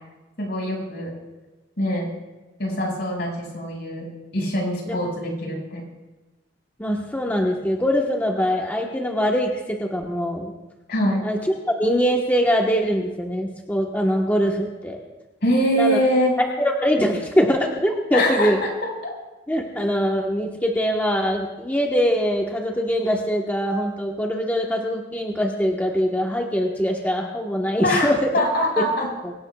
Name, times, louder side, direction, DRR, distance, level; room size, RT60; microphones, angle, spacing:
voice 1, 0.4-1.1 1.8-2.1 2.6-4.1 4.3-5.8 10.9-11.2 15.4-16.4 18.1-18.9 27.8-29.1, equal, 60° left, -1 dB, 5.5 m, -23 dB
voice 2, 6.8-10.5 11.2-11.4 11.7-15.0 15.7-16.0 16.6-18.6 19.5-28.2 29.2-29.3, equal, 10° left, -1 dB, 1.2 m, -23 dB
24.5 x 17.0 x 2.3 m, 1.1 s
head